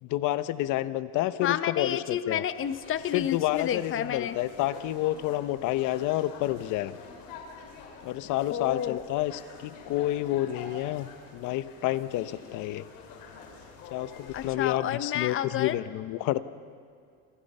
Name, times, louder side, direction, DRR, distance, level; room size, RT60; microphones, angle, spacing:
voice 1, 0.0-2.4 3.1-7.0 8.0-12.9 13.9-16.4, left 15 dB, 65° left, 13 dB, 1.1 m, -29 dB
voice 2, 1.4-4.4 8.5-9.0 14.3-15.8, left 10 dB, 40° left, 11 dB, 1.2 m, -30 dB
sound 1, 2.5-14.5, left 4 dB, 85° left, 5.4 m, -47 dB
28.0 x 27.0 x 5.6 m, 2.3 s
cardioid pair, 145°, 33 cm